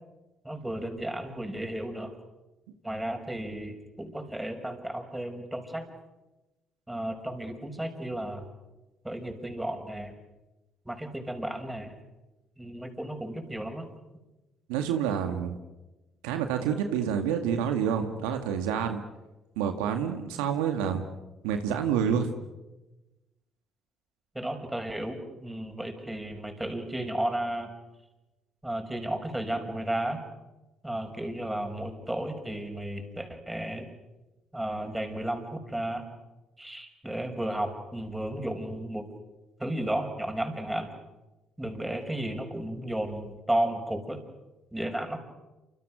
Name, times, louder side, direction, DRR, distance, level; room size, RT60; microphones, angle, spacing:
voice 1, 0.4-2.1 2.8-5.9 6.9-8.5 9.0-10.1 10.8-12.0 12.6-13.9 24.3-27.7 28.6-30.2 30.8-33.9 34.5-36.1 36.6-39.1 39.6-40.9 41.6-44.2 44.7-45.2, right 1 dB, 10° right, 5 dB, 6.1 m, -33 dB
voice 2, 14.7-15.6 16.2-19.0 19.6-21.0 21.4-22.3, right 8 dB, 85° right, 6 dB, 1.9 m, -28 dB
28.0 x 27.0 x 6.3 m, 1.1 s
hypercardioid pair, 60°, 0 cm